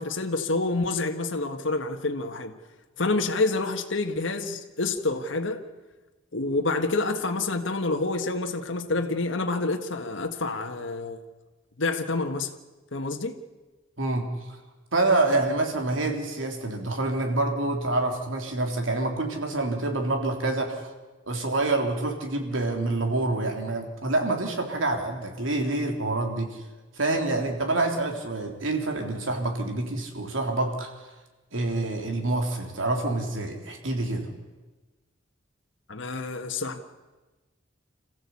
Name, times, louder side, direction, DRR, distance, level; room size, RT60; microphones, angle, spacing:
voice 1, 0.0-2.5 3.0-5.6 6.3-11.2 11.8-12.5 12.9-13.3 27.3-27.4 35.9-36.8, left 3 dB, 70° left, 4 dB, 1.6 m, -28 dB
voice 2, 14.0-14.6 14.9-20.9 21.3-26.6 27.0-30.9 31.5-34.3, right 2 dB, 90° right, 3 dB, 3.6 m, -27 dB
27.0 x 15.0 x 8.5 m, 1.2 s
head